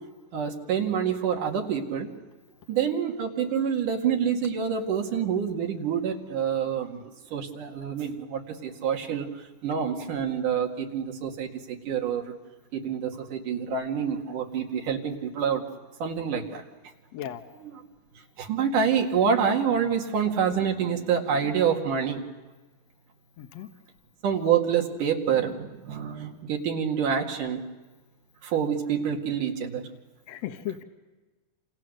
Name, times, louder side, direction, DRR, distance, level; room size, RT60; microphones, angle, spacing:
voice 1, 0.3-2.1 2.7-9.3 9.6-12.2 12.7-15.6 16.0-16.6 17.6-17.8 18.4-22.2 24.2-27.6 28.4-29.8, right 7 dB, 85° right, 2 dB, 3.7 m, -27 dB
voice 2, 17.1-17.4 23.4-23.7 30.3-30.8, left 11 dB, 65° left, 6 dB, 2.3 m, -35 dB
28.5 x 28.0 x 6.6 m, 1.2 s
omnidirectional pair, 3.6 m